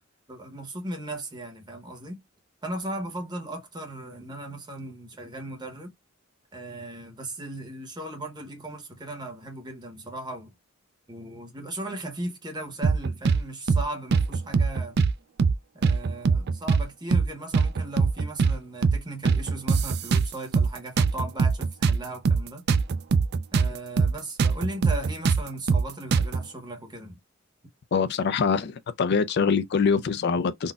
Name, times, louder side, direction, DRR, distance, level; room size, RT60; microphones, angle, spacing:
voice 1, 0.3-2.2 2.6-5.9 6.5-10.5 11.1-15.0 15.7-22.7 23.5-27.2, right 1 dB, 20° right, 1.0 m, -37 dB
sound 1, 12.8-13.4 13.7-13.8 14.1-15.1 15.4-15.6 15.8-16.8 17.1-17.3 17.5-18.6 18.8-19.0 19.3-20.7 21.0-23.7 24.0-24.1 24.4-26.4, right 5 dB, 55° right, 0.4 m, -22 dB
voice 2, 27.9-30.7, left 5 dB, 55° left, 0.4 m, -24 dB
3.9 x 2.1 x 2.4 m
head